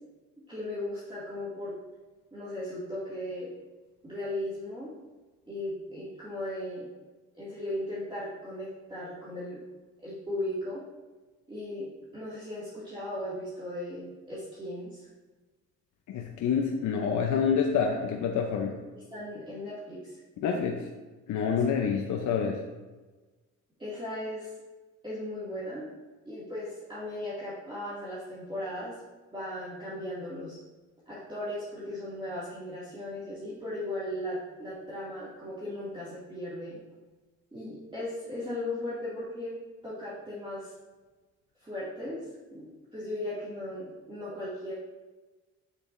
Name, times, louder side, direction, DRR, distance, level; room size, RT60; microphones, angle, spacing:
voice 1, 0.5-1.7 2.3-3.5 4.0-4.9 5.5-6.9 7.3-9.6 10.0-10.8 11.5-15.1 19.1-20.2 23.8-24.5 25.0-25.8 26.2-29.0 29.3-30.6 31.1-36.8 37.5-39.5 39.8-40.7 41.6-44.7, left 1 dB, 15° right, -10 dB, 2.3 m, -37 dB
voice 2, 16.1-18.8 20.4-20.9 21.3-22.6, left 6 dB, 70° left, 2 dB, 0.7 m, -27 dB
8.3 x 6.6 x 2.6 m, 1.2 s
cardioid pair, 90°, 30 cm